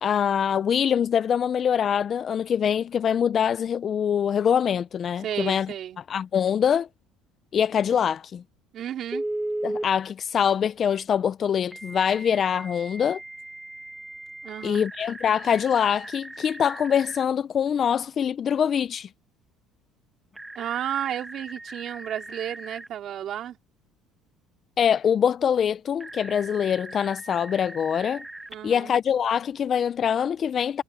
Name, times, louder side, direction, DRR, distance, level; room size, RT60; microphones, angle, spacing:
voice 1, 0.0-5.7 6.1-6.9 7.5-8.4 9.6-13.2 14.6-19.1 24.8-28.2 28.6-30.8, left 8 dB, 35° left, 0.4 m, -24 dB
voice 2, 5.2-6.0 8.7-9.2 14.4-14.9 20.6-23.6 28.5-28.9, right 10 dB, 45° right, 4.2 m, -32 dB
Telephone, 9.1-9.9 11.7-17.2 20.3-22.9 26.0-28.5, right 1 dB, 5° right, 1.2 m, -37 dB
cardioid pair, 140°, 0 cm